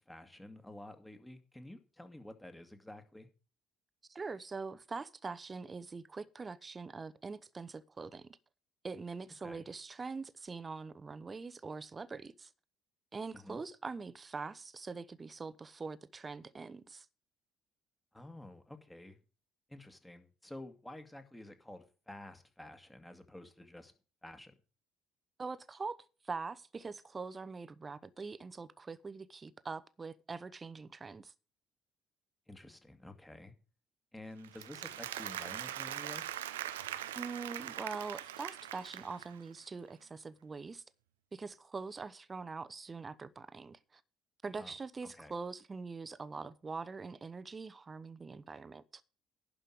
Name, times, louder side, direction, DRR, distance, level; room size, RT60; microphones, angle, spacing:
voice 1, 0.0-3.3 9.4-9.6 13.3-13.6 18.1-19.2 19.7-23.9 24.2-24.5 32.5-33.5 34.1-36.3 44.6-44.7 45.1-45.3, left 1 dB, 10° left, 2.1 m, -50 dB
voice 2, 4.1-8.4 8.8-12.5 13.1-17.1 25.4-26.0 26.2-31.3 37.1-40.8 41.3-44.0 44.4-48.8, right 4 dB, 30° right, 0.9 m, -43 dB
Applause, 34.4-39.5, right 12 dB, 80° right, 0.6 m, -42 dB
11.0 x 5.5 x 7.8 m
hypercardioid pair, 55°, 0 cm